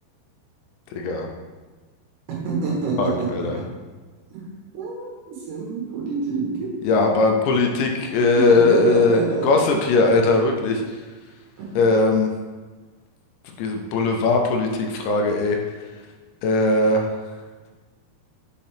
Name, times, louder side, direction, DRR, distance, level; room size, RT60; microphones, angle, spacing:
voice 1, 0.9-1.3 3.0-3.6 6.8-11.0 11.8-12.3 13.6-15.6 16.4-17.1, left 3 dB, 80° left, 2 dB, 2.8 m, -19 dB
voice 2, 2.3-3.6 4.3-4.4 4.7-6.7 8.3-9.5 11.6-11.8, right 4 dB, 70° right, -4 dB, 3.0 m, -27 dB
7.2 x 5.2 x 3.4 m, 1.3 s
omnidirectional pair, 5.2 m